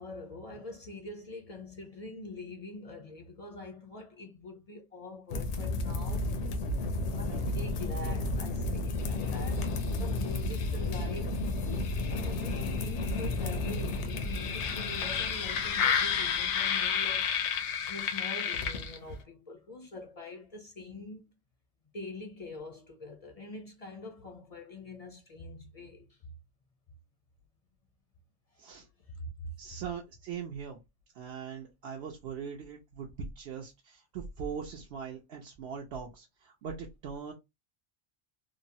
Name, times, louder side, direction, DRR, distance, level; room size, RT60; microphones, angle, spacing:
voice 1, 0.0-6.3 7.1-9.7 10.0-11.4 12.1-17.3 17.9-21.3 21.9-26.1 29.2-29.5, left 2 dB, 45° left, 0.5 m, -44 dB
sound 1, 5.3-19.2, left 4 dB, 85° left, 0.9 m, -31 dB
voice 2, 29.6-30.8 31.2-37.3, right 6 dB, 70° right, 0.8 m, -41 dB
3.0 x 2.0 x 2.6 m
omnidirectional pair, 1.2 m